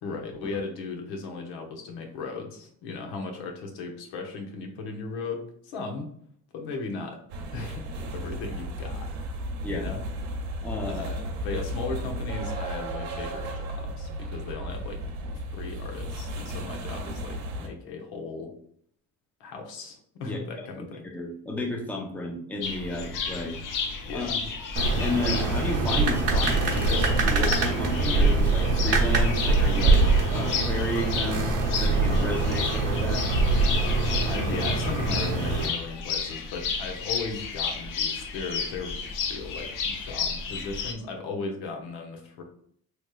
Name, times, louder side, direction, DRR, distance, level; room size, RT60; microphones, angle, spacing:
voice 1, 0.0-6.1 6.5-7.2 7.5-9.1 9.7-10.0 10.8-15.0 15.5-18.5 19.4-21.1 24.1-24.4 34.2-39.0 39.3-42.4, left 4 dB, 80° left, 2 dB, 0.9 m, -36 dB
sound 1, 7.3-17.7, right 1 dB, 75° right, 0.9 m, -34 dB
voice 2, 10.6-11.0 20.3-20.7 21.0-23.6 24.1-24.4 25.0-30.0 30.3-33.2, left 1 dB, 5° left, 0 dB, 0.6 m, -32 dB
sound 2, 22.6-40.9, left 5 dB, 55° left, 0.6 m, -33 dB
sound 3, 24.8-35.7, right 3 dB, 40° right, 0.9 m, -23 dB
3.1 x 3.1 x 2.3 m, 0.64 s
cardioid pair, 110°, 39 cm